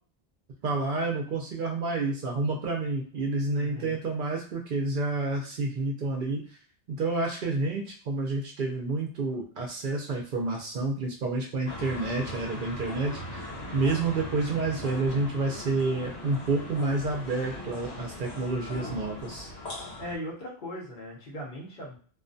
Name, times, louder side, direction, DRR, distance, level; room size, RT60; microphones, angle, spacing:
voice 1, 0.6-6.4 6.9-19.5, right 3 dB, 60° right, 0 dB, 0.7 m, -29 dB
voice 2, 3.5-4.0 20.0-22.0, equal, 55° left, -3 dB, 0.9 m, -39 dB
sound 1, 11.7-20.2, left 1 dB, 90° left, 1.0 m, -39 dB
2.3 x 2.2 x 2.5 m, 0.43 s
omnidirectional pair, 1.0 m